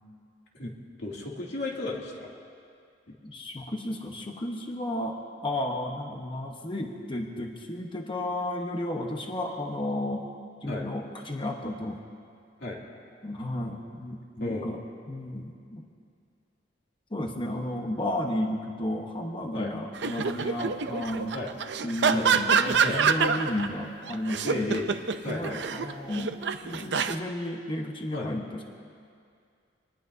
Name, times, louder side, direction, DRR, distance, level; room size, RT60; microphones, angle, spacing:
voice 1, 1.0-2.3 3.1-3.2 10.7-10.9 12.6-12.8 14.4-14.7 19.5-19.7 21.3-21.5 22.1-22.3 22.8-23.0 24.4-24.9 25.2-25.6 28.1-28.3, left 2 dB, 65° left, -3 dB, 2.7 m, -33 dB
voice 2, 3.2-10.3 10.6-12.0 13.2-15.9 17.1-21.3 21.8-24.7 25.2-26.4 26.6-28.6, left 1 dB, 30° left, 2 dB, 1.1 m, -33 dB
sound 1, 20.0-23.7 24.1-27.2, right 6 dB, 65° right, 0.6 m, -26 dB
25.5 x 19.5 x 2.8 m, 2.3 s
head